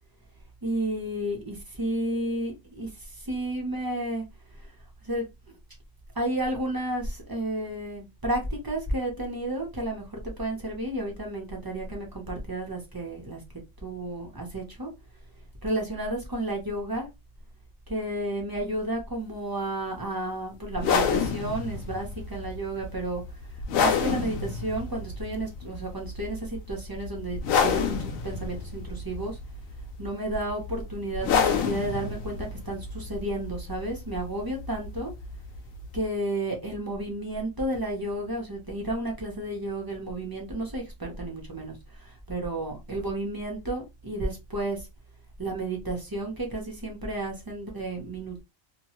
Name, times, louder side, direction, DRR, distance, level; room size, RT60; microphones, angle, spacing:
voice 1, 0.6-4.2 4.6-4.7 5.0-5.3 6.1-13.4 13.8-14.9 15.6-17.1 17.9-23.2 23.5-29.4 30.0-35.1 35.9-44.9 45.4-48.4, right 1 dB, 20° right, 0.7 m, -32 dB
sound 1, 20.7-36.0, left 6 dB, 85° left, 1.0 m, -30 dB
2.9 x 2.2 x 2.9 m
omnidirectional pair, 1.4 m